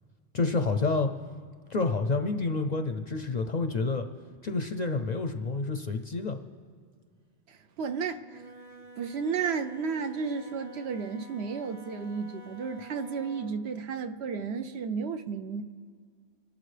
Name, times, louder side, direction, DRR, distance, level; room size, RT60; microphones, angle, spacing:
voice 1, 0.3-1.1 1.7-4.1 4.4-6.4, left 3 dB, 50° left, 7 dB, 0.6 m, -28 dB
voice 2, 7.5-8.4 9.0-15.6, right 5 dB, 70° right, 8 dB, 0.9 m, -33 dB
Wind instrument woodwind instrument, 8.2-13.6, equal, 40° right, 0.9 m, -50 dB
25.0 x 12.0 x 3.3 m, 2.1 s
omnidirectional pair, 1.2 m